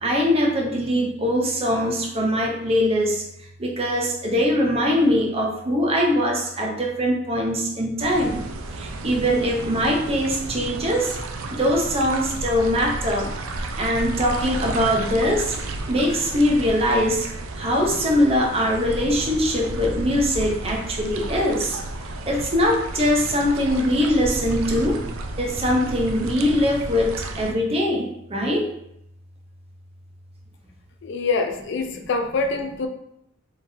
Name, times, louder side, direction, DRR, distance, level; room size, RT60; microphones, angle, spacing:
voice 1, 0.0-3.2 3.6-8.4 8.8-11.2 11.5-13.3 13.8-15.5 15.9-17.3 17.6-21.8 22.3-25.0 25.4-28.7 31.9-32.0, equal, 30° right, 0 dB, 0.6 m, -22 dB
sound 1, 8.0-27.5, right 2 dB, 80° right, 0.4 m, -32 dB
voice 2, 31.0-32.9, left 4 dB, 60° left, 5 dB, 0.4 m, -25 dB
3.9 x 3.4 x 2.6 m, 0.78 s
head